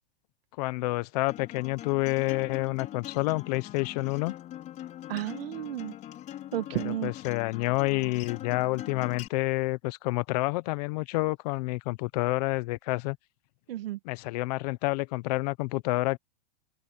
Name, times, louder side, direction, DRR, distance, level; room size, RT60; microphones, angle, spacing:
voice 1, 0.6-4.3 6.7-13.2 14.0-16.2, left 22 dB, 40° left, 0.9 m, -29 dB
Acoustic guitar, 1.3-9.3, left 12 dB, 25° left, 5.6 m, -42 dB
voice 2, 5.1-5.9 6.5-7.1 13.7-14.0, right 13 dB, 65° right, 1.9 m, -32 dB
supercardioid pair, 160°, 31 cm